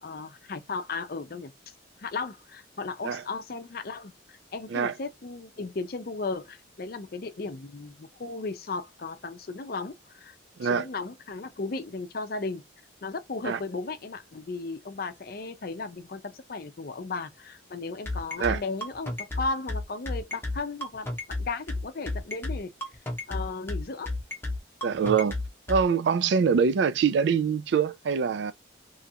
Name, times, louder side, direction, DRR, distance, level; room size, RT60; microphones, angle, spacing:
voice 1, 0.0-1.5 2.0-10.3 10.6-12.6 13.0-22.7 23.3-24.1, left 3 dB, 55° left, 0.5 m, -35 dB
sound 1, 18.1-25.8, left 2 dB, 15° left, 0.8 m, -31 dB
voice 2, 24.8-25.4 25.7-28.5, right 6 dB, 70° right, 0.3 m, -24 dB
3.1 x 2.4 x 2.7 m
head